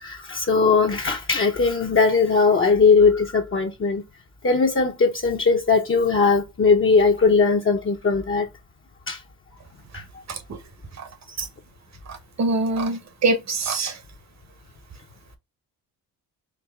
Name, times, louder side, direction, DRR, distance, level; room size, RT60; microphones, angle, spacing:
voice 1, 0.0-4.0 4.4-8.5 9.1-9.2 9.9-10.0, left 4 dB, 35° left, 0.7 m, -19 dB
voice 2, 12.4-14.0, right 3 dB, 50° right, 1.0 m, -24 dB
4.6 x 2.6 x 2.3 m
cardioid pair, 80°, 36 cm